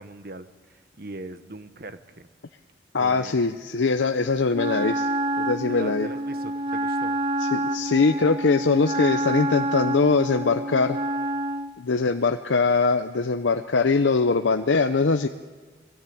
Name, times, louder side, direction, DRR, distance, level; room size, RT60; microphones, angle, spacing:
voice 1, 0.0-2.3 3.0-3.5 5.7-7.2, right 2 dB, 50° right, 11 dB, 1.0 m, -40 dB
voice 2, 2.9-5.1 5.4-6.1 7.4-11.0 11.8-15.3, left 4 dB, 90° left, 7 dB, 0.7 m, -22 dB
Wind instrument woodwind instrument, 4.5-11.8, right 1 dB, 25° right, 0.7 m, -28 dB
22.0 x 17.0 x 8.5 m, 1.4 s
head